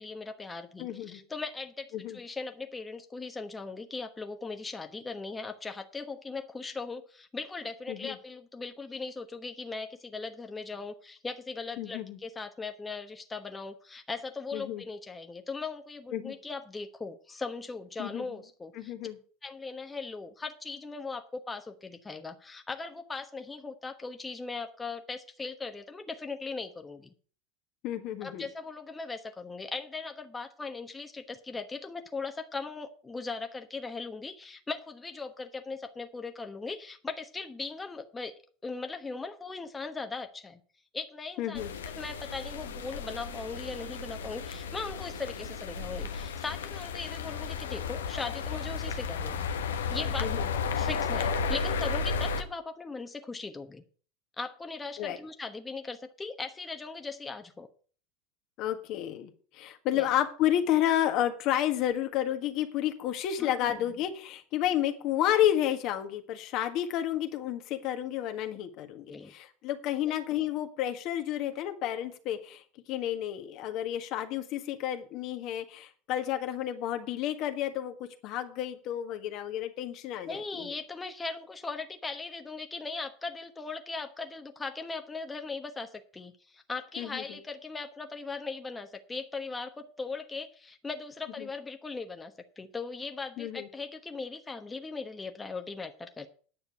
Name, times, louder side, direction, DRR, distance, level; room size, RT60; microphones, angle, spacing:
voice 1, 0.0-18.9 19.4-27.1 28.2-38.4 38.6-40.6 40.9-49.5 49.9-53.8 54.4-57.7 59.9-60.1 63.4-63.8 69.1-69.3 70.0-70.1 80.3-96.3, left 4 dB, 15° left, 6 dB, 1.1 m, -39 dB
voice 2, 0.8-1.2 1.9-2.2 7.9-8.2 11.8-12.2 14.5-14.8 16.1-16.3 18.0-18.2 18.8-19.2 27.8-28.4 41.4-41.7 50.2-50.5 55.0-55.2 58.6-72.6 72.9-80.7 87.0-87.4 91.4-91.5 93.4-93.7, left 11 dB, 55° left, 7 dB, 1.6 m, -31 dB
sound 1, 41.5-52.4, left 5 dB, 80° left, 1.1 m, -33 dB
9.9 x 6.5 x 7.8 m, 0.43 s
hypercardioid pair, 90°, 0 cm